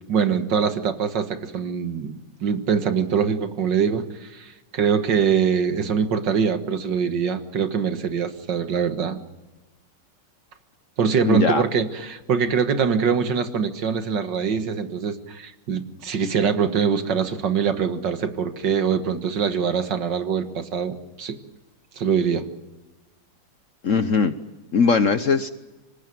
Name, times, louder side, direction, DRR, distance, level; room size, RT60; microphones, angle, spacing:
voice 1, 0.1-9.2 11.0-21.4 22.0-22.5, right 6 dB, 65° right, 8 dB, 2.2 m, -23 dB
voice 2, 11.2-11.6 23.8-24.3 24.7-25.5, left 5 dB, 50° left, 11 dB, 1.1 m, -20 dB
26.0 x 18.5 x 9.3 m, 1.1 s
omnidirectional pair, 2.1 m